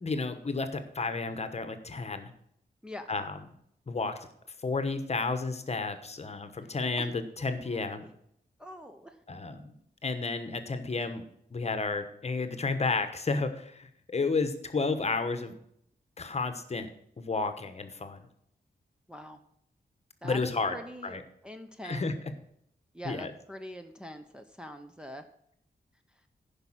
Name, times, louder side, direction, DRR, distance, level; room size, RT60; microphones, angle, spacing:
voice 1, 0.0-2.3 3.1-3.4 3.9-4.2 4.6-8.0 9.3-9.6 10.0-11.2 11.5-15.5 16.2-16.9 17.2-18.3 20.2-20.8 21.0-21.2 21.8-22.1 23.0-23.3, left 3 dB, 40° left, 9 dB, 1.1 m, -32 dB
voice 2, 2.8-3.1 7.0-7.1 7.7-8.0 8.6-9.1 19.1-19.4 20.2-21.2 21.4-22.1 22.9-25.2, equal, 5° right, 4 dB, 0.7 m, -43 dB
10.5 x 5.5 x 7.3 m, 0.72 s
wide cardioid pair, 110°, 17 cm